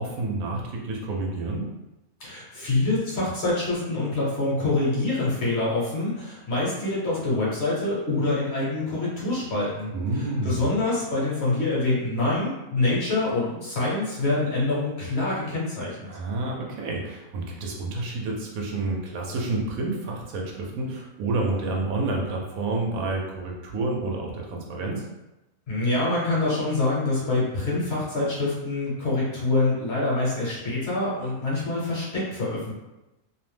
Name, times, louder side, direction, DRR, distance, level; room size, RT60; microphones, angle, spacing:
voice 1, 0.0-1.7 9.9-10.7 16.1-25.0, right 2 dB, 75° right, -1 dB, 1.0 m, -29 dB
voice 2, 2.2-16.1 25.7-32.7, left 2 dB, 55° left, -6 dB, 1.0 m, -26 dB
2.6 x 2.0 x 3.2 m, 0.99 s
omnidirectional pair, 1.5 m